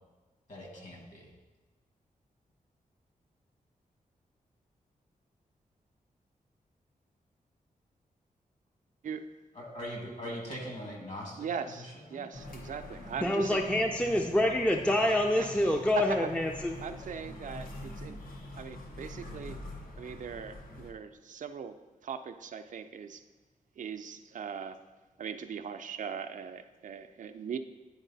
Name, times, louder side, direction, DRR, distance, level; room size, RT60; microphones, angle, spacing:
voice 1, 0.5-1.3 9.5-12.3, equal, 55° left, -1 dB, 1.8 m, -41 dB
voice 2, 11.4-13.6 15.4-15.6 16.0-16.2 16.8-18.2 18.6-19.6 20.0-21.8 22.0-23.2 23.8-24.8 25.2-27.6, right 7 dB, 65° right, 8 dB, 0.4 m, -40 dB
sound 1, 12.3-20.9, left 1 dB, 85° left, 0.9 m, -45 dB
voice 3, 13.2-16.8, left 1 dB, 10° left, 3 dB, 0.4 m, -27 dB
10.0 x 4.1 x 3.9 m, 1.2 s
wide cardioid pair, 135°, 14 cm